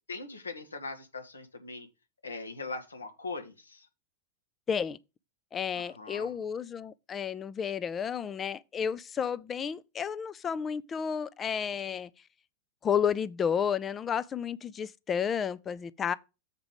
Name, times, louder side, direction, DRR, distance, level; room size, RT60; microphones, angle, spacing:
voice 1, 0.1-1.9 2.2-3.9 5.7-6.3, left 3 dB, 75° left, 1.3 m, -40 dB
voice 2, 4.7-5.0 5.5-12.1 12.8-16.1, left 7 dB, 20° left, 0.4 m, -31 dB
7.4 x 4.8 x 5.2 m
figure-of-eight pair, 90°, 0 cm